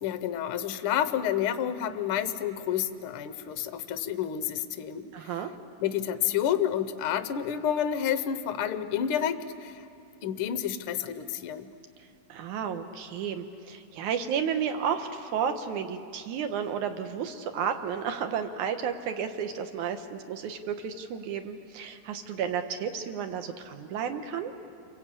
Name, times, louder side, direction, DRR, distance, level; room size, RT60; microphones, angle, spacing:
voice 1, 0.0-5.1 5.8-9.8 10.2-11.7, left 9 dB, 75° left, 10 dB, 1.2 m, -29 dB
voice 2, 5.1-5.5 12.3-24.5, right 7 dB, 70° right, 7 dB, 2.6 m, -32 dB
30.0 x 23.0 x 8.6 m, 2.5 s
omnidirectional pair, 3.8 m